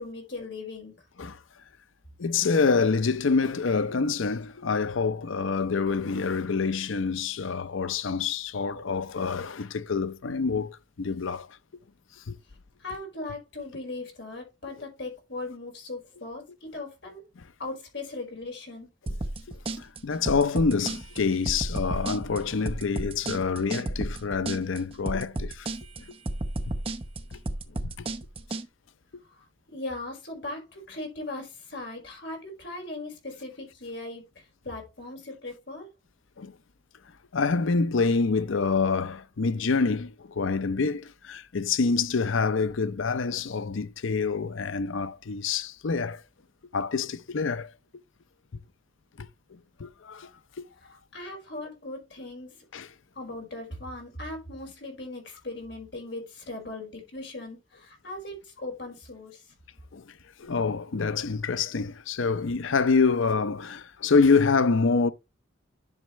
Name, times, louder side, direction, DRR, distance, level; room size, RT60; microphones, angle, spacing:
voice 1, 0.0-1.1 12.8-17.2 17.6-18.9 29.3-35.9 50.9-52.6 53.1-59.4, left 2 dB, 55° left, 4.8 m, -39 dB
voice 2, 2.2-11.5 12.3-12.4 19.1-19.2 19.8-25.7 27.3-27.4 27.8-28.1 36.4-36.5 37.3-46.2 46.7-47.7 49.2-50.3 50.6-50.7 52.7-52.9 59.9-60.1 60.4-65.1, left 4 dB, 75° left, 0.6 m, -26 dB
sound 1, 19.1-28.6, right 1 dB, 30° right, 0.8 m, -33 dB
11.0 x 6.4 x 3.1 m
head